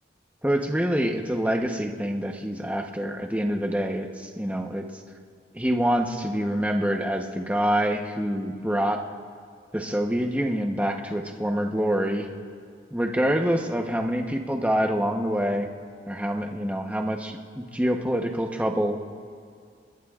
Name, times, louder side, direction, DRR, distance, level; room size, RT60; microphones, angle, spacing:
voice 1, 0.4-4.9 5.5-9.0 9.7-12.3 12.9-15.7 16.1-19.0, equal, 10° right, 3 dB, 0.9 m, -26 dB
24.5 x 20.5 x 2.4 m, 2.3 s
head